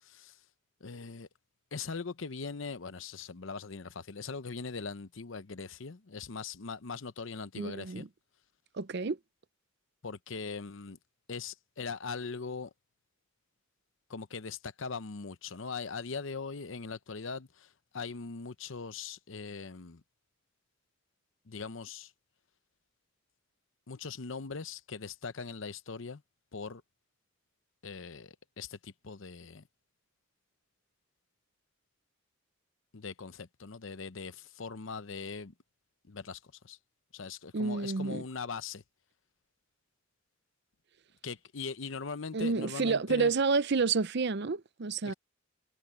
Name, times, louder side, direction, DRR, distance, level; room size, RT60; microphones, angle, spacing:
voice 1, 0.0-0.4 0.8-1.3 1.7-8.1 10.0-11.0 11.3-12.7 14.1-20.0 21.5-22.1 23.9-26.2 26.5-26.8 27.8-29.6 32.9-35.5 36.0-36.8 37.1-38.8 41.2-43.3 45.1-45.2, left 4 dB, 65° left, 0.8 m, -41 dB
voice 2, 7.6-8.1 8.8-9.2 37.5-38.2 42.3-45.1, right 4 dB, 55° right, 0.6 m, -29 dB
head